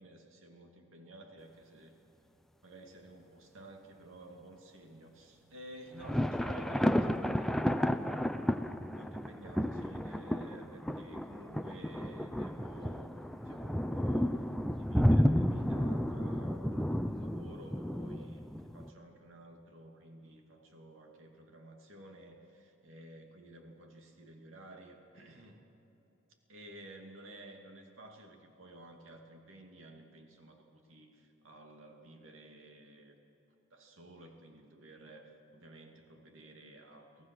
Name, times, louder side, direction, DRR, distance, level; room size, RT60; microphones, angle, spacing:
voice 1, 0.0-1.9 2.6-7.8 8.9-14.4 14.7-25.6 26.5-33.2 33.7-37.3, right 1 dB, 85° right, 2 dB, 2.6 m, -53 dB
sound 1, 6.0-18.9, equal, ahead, 0.5 m, -32 dB
24.0 x 17.0 x 6.2 m, 3.0 s
head